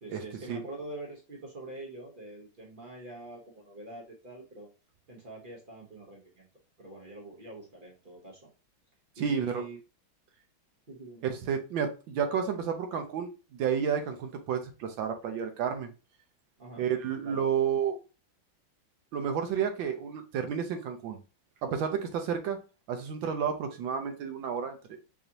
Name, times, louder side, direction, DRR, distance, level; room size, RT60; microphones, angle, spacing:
voice 1, 0.0-4.7 5.1-6.5 6.8-8.5 9.2-9.8 10.9-11.3 16.6-16.9 17.2-17.4, right 2 dB, 55° right, -2 dB, 0.5 m, -45 dB
voice 2, 9.2-9.6 11.3-15.9 16.8-18.0 19.1-21.2 21.6-22.6 22.9-25.0, right 7 dB, 75° right, 6 dB, 1.3 m, -31 dB
4.8 x 2.7 x 2.7 m, 0.31 s
omnidirectional pair, 2.2 m